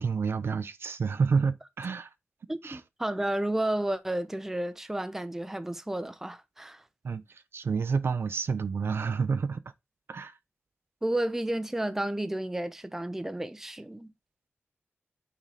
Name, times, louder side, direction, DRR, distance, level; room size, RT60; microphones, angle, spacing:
voice 1, 0.0-2.1 2.6-2.8 7.0-9.6 10.1-10.4, right 5 dB, 65° right, 0.5 m, -29 dB
voice 2, 2.5-6.8 11.0-14.1, right 1 dB, 10° right, 0.5 m, -32 dB
6.1 x 3.9 x 4.1 m
wide cardioid pair, 125°, 4 cm